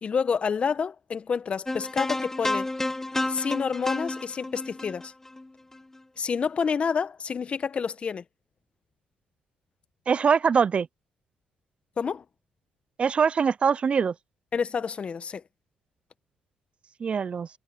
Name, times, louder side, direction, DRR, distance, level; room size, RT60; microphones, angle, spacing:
voice 1, 0.0-2.7 3.3-5.1 6.2-8.2 12.0-12.2 14.5-15.4, left 6 dB, 45° left, 1.4 m, -28 dB
sound 1, 1.7-6.0, left 2 dB, 15° left, 1.5 m, -31 dB
voice 2, 10.1-10.9 13.0-14.1 17.0-17.5, right 6 dB, 45° right, 0.6 m, -23 dB
supercardioid pair, 55°, 3 cm